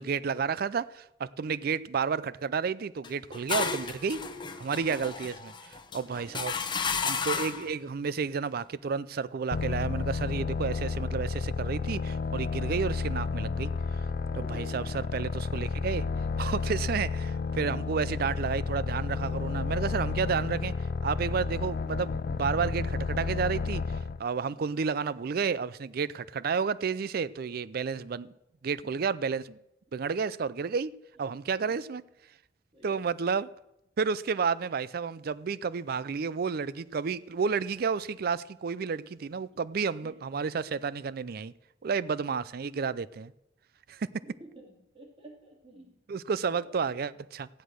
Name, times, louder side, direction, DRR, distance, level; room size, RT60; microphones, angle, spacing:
voice 1, 0.0-4.2 4.6-5.3 5.6-6.6 7.0-14.0 14.3-16.1 16.4-20.7 21.0-28.3 28.6-29.6 29.9-30.9 31.2-32.0 32.8-33.5 34.0-41.5 41.8-43.3 43.9-44.1 46.1-47.5, right 5 dB, 55° right, 0.4 m, -31 dB
sound 1, 3.0-7.7, left 5 dB, 25° left, 1.0 m, -33 dB
voice 2, 4.7-5.1 6.1-6.4 14.4-14.8 31.6-31.7 32.7-33.1 40.0-40.2 44.2-46.0 46.5-47.1, right 1 dB, 35° right, 2.7 m, -50 dB
sound 2, 9.5-24.2, left 4 dB, 55° left, 0.5 m, -31 dB
14.5 x 10.0 x 6.3 m
head